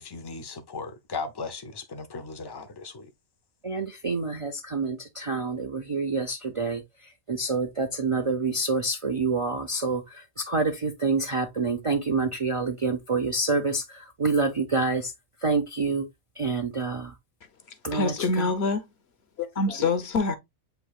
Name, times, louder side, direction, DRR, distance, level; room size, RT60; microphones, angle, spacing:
voice 1, 0.0-3.1, left 4 dB, 25° left, 0.5 m, -37 dB
voice 2, 3.6-6.8 7.3-10.0 10.4-13.8 14.2-15.1 15.4-16.1 16.4-17.1 17.8-18.5, right 3 dB, 40° right, 0.4 m, -27 dB
voice 3, 17.9-18.8 19.4-20.4, left 3 dB, 60° left, 1.0 m, -25 dB
7.8 x 2.8 x 2.3 m
omnidirectional pair, 1.3 m